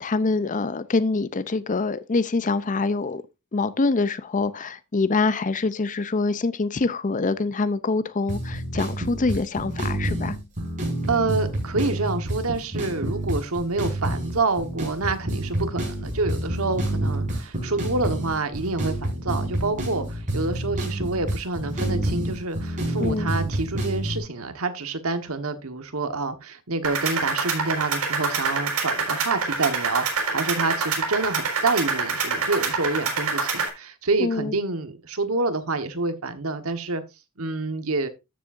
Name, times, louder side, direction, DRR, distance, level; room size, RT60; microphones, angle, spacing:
voice 1, 0.0-3.2 3.5-10.4 23.0-23.3 34.2-34.5, left 3 dB, 35° left, 0.5 m, -25 dB
sound 1, 8.3-24.2, right 1 dB, 35° right, 5.4 m, -28 dB
voice 2, 11.1-37.0 37.4-38.1, right 3 dB, 70° right, 1.4 m, -27 dB
sound 2, 26.8-33.7, right 4 dB, 85° right, 5.1 m, -26 dB
13.5 x 7.4 x 2.6 m
head